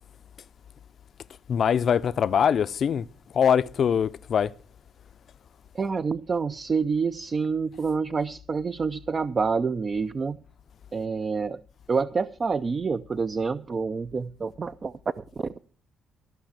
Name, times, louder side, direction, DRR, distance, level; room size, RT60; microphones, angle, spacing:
voice 1, 1.5-3.1 3.3-4.5, left 8 dB, 55° left, 0.5 m, -23 dB
voice 2, 5.7-10.4 10.9-11.6 11.9-15.5, right 5 dB, 35° right, 0.4 m, -27 dB
14.5 x 5.6 x 7.4 m
cardioid pair, 90°, 0 cm